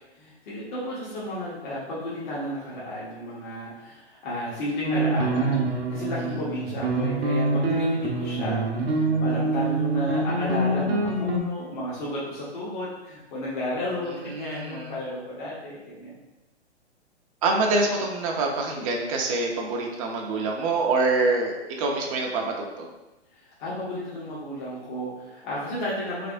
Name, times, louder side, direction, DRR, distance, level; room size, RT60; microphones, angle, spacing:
voice 1, 0.2-8.6 8.9-16.2 23.4-26.3, left 1 dB, 45° left, -7 dB, 1.0 m, -32 dB
sound 1, 4.8-11.4, right 2 dB, 60° right, 0.7 m, -25 dB
voice 2, 14.3-14.9 17.4-22.9, right 3 dB, 30° right, 0 dB, 0.5 m, -26 dB
3.3 x 3.3 x 2.5 m, 1.0 s
figure-of-eight pair, 120°, 34 cm